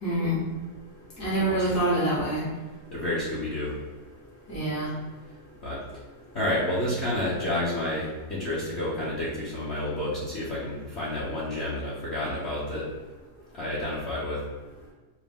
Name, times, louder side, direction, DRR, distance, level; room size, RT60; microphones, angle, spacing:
voice 1, 0.0-0.4 1.2-2.4 4.5-4.9, right 1 dB, 70° left, -9 dB, 2.3 m, -26 dB
voice 2, 1.4-1.7 2.9-3.7 5.6-5.8 6.3-12.9 13.5-14.4, left 1 dB, 50° left, -8 dB, 0.9 m, -30 dB
5.0 x 2.1 x 3.5 m, 1.2 s
omnidirectional pair, 1.8 m